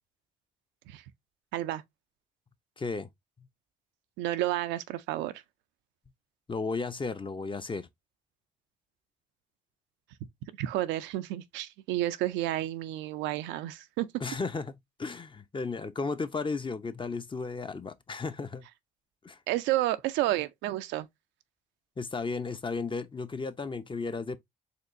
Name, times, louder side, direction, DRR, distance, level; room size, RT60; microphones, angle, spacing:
voice 1, 2.8-3.1 6.5-7.9 14.2-18.6 19.2-19.4 22.0-24.4, left 4 dB, 25° left, 0.7 m, -34 dB
voice 2, 4.2-5.3 10.6-14.1 19.5-21.1, right 15 dB, 80° right, 0.4 m, -30 dB
4.4 x 2.9 x 2.6 m
hypercardioid pair, 50°, 18 cm